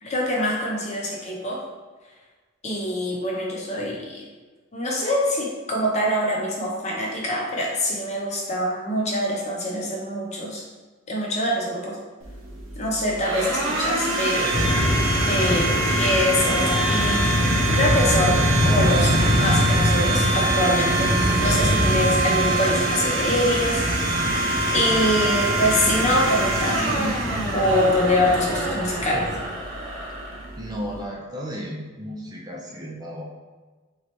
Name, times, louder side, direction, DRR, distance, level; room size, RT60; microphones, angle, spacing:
voice 1, 0.0-1.6 2.6-4.2 4.7-10.6 11.1-12.0 12.7-14.6 15.3-21.1 21.4-23.8 24.7-27.1 27.5-29.3, left 1 dB, 35° left, -2 dB, 0.8 m, -24 dB
Domestic sounds home sounds, 12.2-31.0, right 2 dB, 80° right, 0.8 m, -25 dB
sound 1, 14.5-29.5, left 1 dB, 70° left, 0.7 m, -25 dB
voice 2, 30.6-33.2, equal, 20° right, -2 dB, 0.4 m, -34 dB
3.8 x 3.2 x 3.0 m, 1.3 s
head